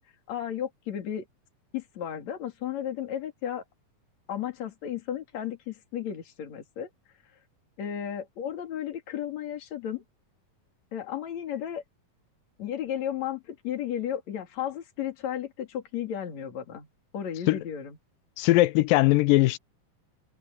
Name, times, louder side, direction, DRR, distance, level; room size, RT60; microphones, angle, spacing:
voice 1, 0.3-1.3 1.7-3.6 4.3-6.9 7.8-10.0 10.9-11.8 12.6-16.9 17.1-18.0, left 10 dB, 55° left, 3.7 m, -34 dB
voice 2, 18.4-19.6, left 19 dB, 85° left, 2.3 m, -20 dB
omnidirectional pair, 4.0 m